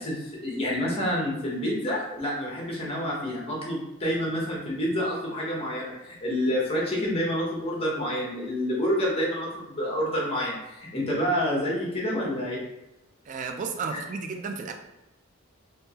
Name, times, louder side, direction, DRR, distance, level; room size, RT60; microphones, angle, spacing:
voice 1, 0.0-12.6 13.9-14.0, equal, 25° left, -3 dB, 0.9 m, -28 dB
voice 2, 13.3-14.7, right 5 dB, 35° right, 4 dB, 0.3 m, -33 dB
3.5 x 2.6 x 2.8 m, 0.94 s
head